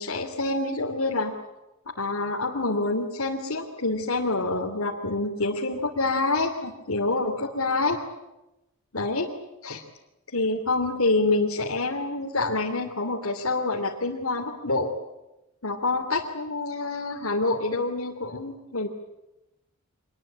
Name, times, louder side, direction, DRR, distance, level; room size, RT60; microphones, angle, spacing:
voice 1, 0.0-1.3 1.9-8.0 8.9-9.3 9.6-9.8 10.3-14.9 15.6-18.9, left 2 dB, 75° left, -1 dB, 2.9 m, -27 dB
25.5 x 21.0 x 8.7 m, 0.96 s
head